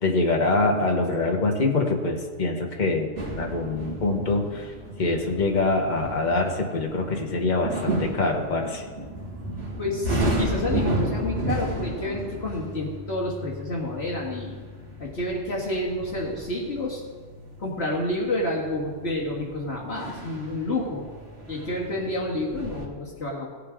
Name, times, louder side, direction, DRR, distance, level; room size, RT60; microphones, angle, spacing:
voice 1, 0.0-3.1 3.4-4.7 5.0-8.8, left 2 dB, 40° left, 1 dB, 1.4 m, -24 dB
sound 1, 3.2-22.9, right 1 dB, 65° right, 2.2 m, -33 dB
voice 2, 9.8-14.6 15.0-17.0 17.6-21.1 21.5-23.5, left 1 dB, 55° left, -3 dB, 2.0 m, -29 dB
17.0 x 8.3 x 3.7 m, 1.6 s
omnidirectional pair, 1.3 m